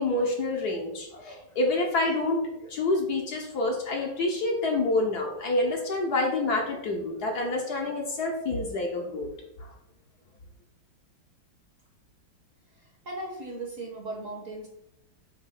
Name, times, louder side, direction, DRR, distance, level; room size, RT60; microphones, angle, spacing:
voice 1, 0.0-9.3, left 2 dB, 55° left, 1 dB, 1.4 m, -27 dB
voice 2, 13.0-14.7, right 2 dB, 50° right, 1 dB, 1.2 m, -37 dB
7.3 x 3.0 x 5.8 m, 0.79 s
omnidirectional pair, 2.2 m